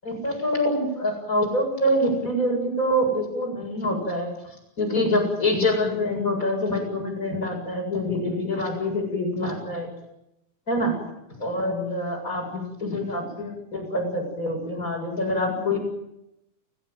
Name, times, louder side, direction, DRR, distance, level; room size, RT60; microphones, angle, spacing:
voice 1, 0.0-4.3 4.8-9.9 10.7-11.0 11.4-15.8, left 1 dB, 20° left, 0 dB, 8.0 m, -25 dB
29.5 x 16.0 x 9.3 m, 0.85 s
omnidirectional pair, 4.3 m